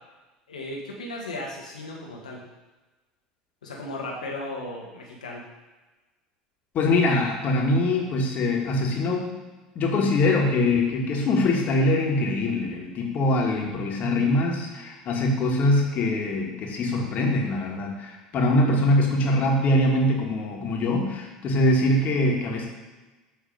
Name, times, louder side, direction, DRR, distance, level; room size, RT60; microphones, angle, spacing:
voice 1, 0.5-2.4 3.6-5.5, left 2 dB, 90° left, -2 dB, 1.6 m, -35 dB
voice 2, 6.7-9.3 9.8-22.7, left 1 dB, 45° left, 0 dB, 1.9 m, -23 dB
9.3 x 3.5 x 5.3 m, 1.2 s
hypercardioid pair, 75°, 4 cm